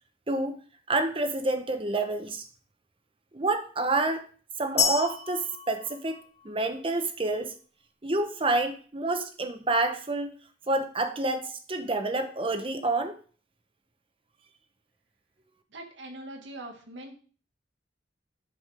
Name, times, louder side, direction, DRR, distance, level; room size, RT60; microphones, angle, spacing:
voice 1, 0.3-0.6 0.9-2.5 3.3-4.2 4.6-6.2 6.4-7.5 8.0-10.3 10.7-13.2, right 2 dB, 30° right, 7 dB, 0.9 m, -28 dB
sound 1, 4.8-6.7, left 6 dB, 35° left, 2.7 m, -30 dB
voice 2, 15.7-17.2, right 1 dB, 80° right, 3 dB, 1.7 m, -42 dB
10.5 x 5.2 x 3.4 m, 0.41 s
head